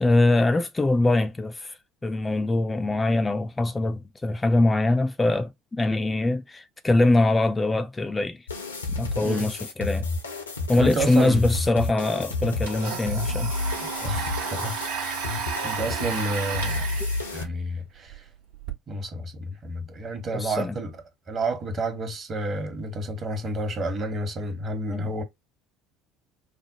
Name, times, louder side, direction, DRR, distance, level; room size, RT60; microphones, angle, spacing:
voice 1, 0.0-1.8 2.0-8.4 9.0-10.1 10.7-13.5 20.3-20.8 24.9-25.1, left 2 dB, 15° left, 0.4 m, -23 dB
sound 1, 8.5-17.4, left 3 dB, 80° left, 0.6 m, -31 dB
voice 2, 9.2-9.5 10.7-11.5 13.8-15.2 15.6-16.8 17.3-18.3 18.9-25.2, right 2 dB, 40° right, 1.1 m, -30 dB
Domestic sounds home sounds, 12.4-18.7, right 6 dB, 65° right, 0.8 m, -33 dB
4.9 x 2.0 x 2.7 m
figure-of-eight pair, 60°, 0 cm